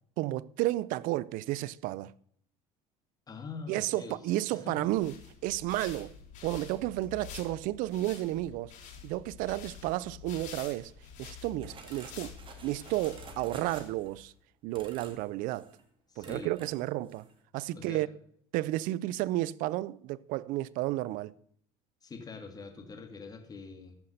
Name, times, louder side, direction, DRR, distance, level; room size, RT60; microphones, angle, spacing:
voice 1, 0.2-2.1 3.7-5.1 5.4-6.1 6.4-8.7 9.0-10.9 11.2-12.3 12.6-14.3 14.6-15.7 16.2-17.3 17.5-18.1 18.5-21.3, right 16 dB, 70° right, 0.5 m, -32 dB
voice 2, 3.3-4.2 4.5-4.8 16.1-16.5 17.7-18.0 22.0-23.9, left 4 dB, 25° left, 2.1 m, -44 dB
sound 1, 4.8-14.3, left 8 dB, 60° left, 4.5 m, -48 dB
sound 2, 11.6-14.2 14.7-15.3 15.6-15.8 16.2-16.8 17.1-17.3, right 4 dB, 35° right, 2.4 m, -50 dB
13.0 x 5.9 x 6.5 m
supercardioid pair, 100°, 15 cm